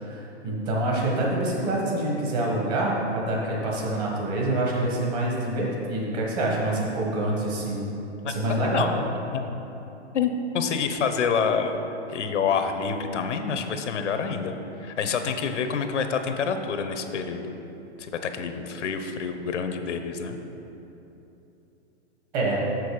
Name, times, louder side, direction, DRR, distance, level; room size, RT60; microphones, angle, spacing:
voice 1, 0.0-7.9 8.2-8.9 22.3-22.6, right 1 dB, 35° right, -3 dB, 1.6 m, -26 dB
voice 2, 8.2-8.9 9.3-9.6 10.1-11.8 12.1-17.6 18.0-20.4, left 6 dB, 90° left, 7 dB, 0.8 m, -27 dB
6.7 x 6.2 x 4.9 m, 3.0 s
hypercardioid pair, 160°, 35 cm